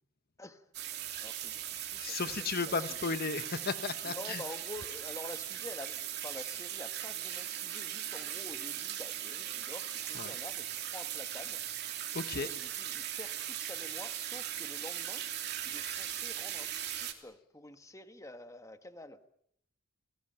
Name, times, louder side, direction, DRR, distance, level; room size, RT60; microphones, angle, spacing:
sound 1, 0.7-17.1, right 11 dB, 55° right, 3.2 m, -39 dB
voice 1, 1.2-2.2 2.6-2.7 4.0-11.6 12.3-15.3 15.6-19.2, left 2 dB, 15° left, 9 dB, 1.4 m, -48 dB
voice 2, 1.9-4.4 10.1-10.4 12.1-12.5, left 4 dB, 50° left, 11 dB, 1.0 m, -35 dB
29.5 x 19.0 x 9.0 m, 0.72 s
head